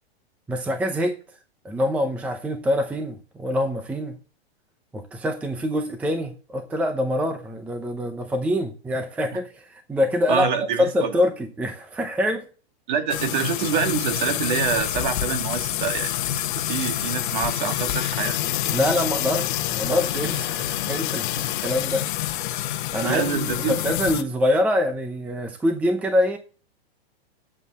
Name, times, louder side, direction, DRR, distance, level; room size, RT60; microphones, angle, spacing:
voice 1, 0.5-1.2 1.6-4.1 4.9-12.4 18.7-22.1 22.9-26.4, left 1 dB, 5° right, 0.7 m, -25 dB
voice 2, 10.3-11.1 12.9-16.2 16.5-18.4 23.0-23.8, right 6 dB, 45° right, 2.0 m, -26 dB
sound 1, 13.1-24.2, left 12 dB, 50° left, 1.1 m, -27 dB
10.5 x 7.6 x 4.2 m
hypercardioid pair, 160°, 32 cm